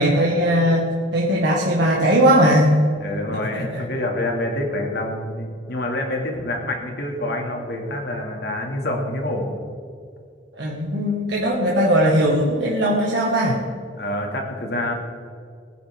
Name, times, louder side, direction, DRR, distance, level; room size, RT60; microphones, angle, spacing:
voice 1, 0.0-2.8 3.5-3.8 10.5-13.6, equal, 70° right, -4 dB, 1.8 m, -19 dB
voice 2, 3.0-9.6 13.9-14.9, left 1 dB, 60° left, 1 dB, 2.3 m, -27 dB
20.5 x 9.9 x 3.6 m, 2.3 s
head